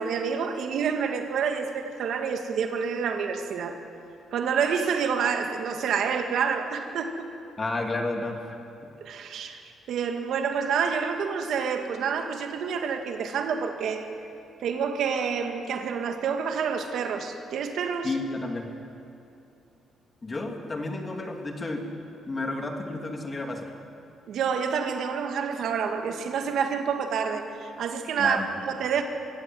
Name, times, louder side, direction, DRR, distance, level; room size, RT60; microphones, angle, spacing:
voice 1, 0.0-3.8 4.3-7.3 9.0-9.6 9.9-14.1 14.6-18.1 24.3-28.4 28.6-29.0, right 6 dB, 75° right, 5 dB, 1.8 m, -28 dB
voice 2, 7.6-8.6 18.0-18.7 20.2-21.9 22.3-23.8 28.2-28.5, left 2 dB, 30° left, 3 dB, 3.0 m, -31 dB
24.5 x 15.5 x 7.8 m, 2.9 s
cardioid pair, 90°, 0 cm